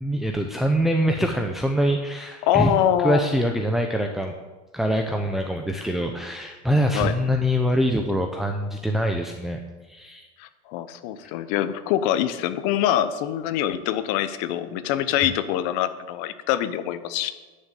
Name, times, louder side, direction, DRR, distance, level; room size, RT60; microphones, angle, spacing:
voice 1, 0.0-4.3 4.7-9.6 9.9-10.3 15.2-15.3, equal, ahead, 3 dB, 0.7 m, -24 dB
voice 2, 2.4-3.3 6.9-7.1 10.4-17.3, left 11 dB, 60° left, 12 dB, 1.0 m, -24 dB
11.0 x 6.7 x 9.2 m, 1.2 s
supercardioid pair, 145°, 18 cm